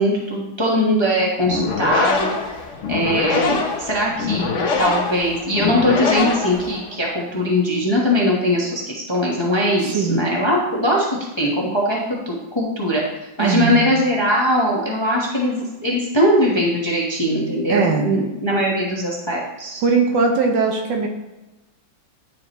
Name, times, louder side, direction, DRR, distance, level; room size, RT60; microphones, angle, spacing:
voice 1, 0.0-2.5 2.9-4.5 4.8-13.0 13.4-19.8, equal, 20° left, -4 dB, 0.9 m, -20 dB
sound 1, 1.4-7.1, left 4 dB, 55° left, 0.9 m, -23 dB
voice 2, 9.8-10.2 13.4-13.9 17.7-18.2 19.8-21.1, right 4 dB, 70° right, 2 dB, 1.6 m, -20 dB
10.0 x 4.9 x 3.0 m, 1.0 s
omnidirectional pair, 2.1 m